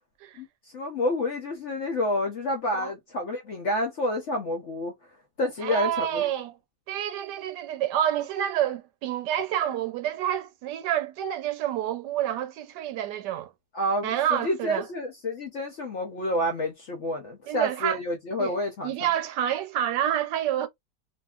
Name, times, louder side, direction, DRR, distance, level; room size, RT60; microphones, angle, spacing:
voice 1, 0.7-4.9 5.4-6.3 13.7-18.9, left 1 dB, 60° left, 0.7 m, -29 dB
voice 2, 5.6-6.5 6.9-13.5 14.0-14.9 17.5-18.0 18.4-18.5 18.8-20.7, right 11 dB, 75° right, 1.1 m, -28 dB
2.8 x 2.6 x 2.3 m
omnidirectional pair, 1.9 m